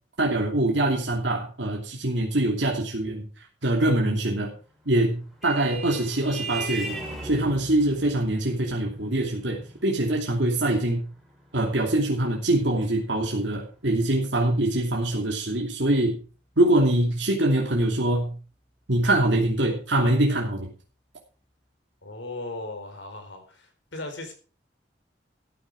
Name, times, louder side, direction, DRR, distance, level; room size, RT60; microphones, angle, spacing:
voice 1, 0.2-3.3 3.6-4.5 4.8-7.0 7.2-11.0 11.5-16.2 16.6-18.4 18.9-20.7, right 1 dB, 80° right, -1 dB, 2.8 m, -24 dB
Vehicle horn car horn honking, 4.8-13.8, right 2 dB, ahead, 4.5 m, -40 dB
voice 2, 22.0-24.3, left 2 dB, 80° left, 5 dB, 4.3 m, -37 dB
14.0 x 9.5 x 4.8 m, 0.37 s
head